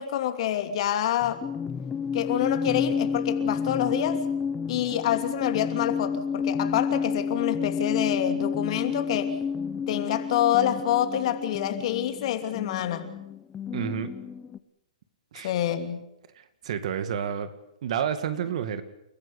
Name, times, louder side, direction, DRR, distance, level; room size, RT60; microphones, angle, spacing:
voice 1, 0.0-1.4 2.1-4.2 4.7-9.3 9.9-13.1 15.4-16.1, left 11 dB, 50° left, 7 dB, 2.9 m, -27 dB
sound 1, 1.2-14.6, left 6 dB, 15° left, 1.0 m, -30 dB
voice 2, 13.7-14.1 15.3-15.5 16.6-17.5 17.8-18.8, right 8 dB, 55° right, 11 dB, 2.2 m, -29 dB
29.5 x 14.5 x 8.3 m, 0.85 s
hypercardioid pair, 130°, 4 cm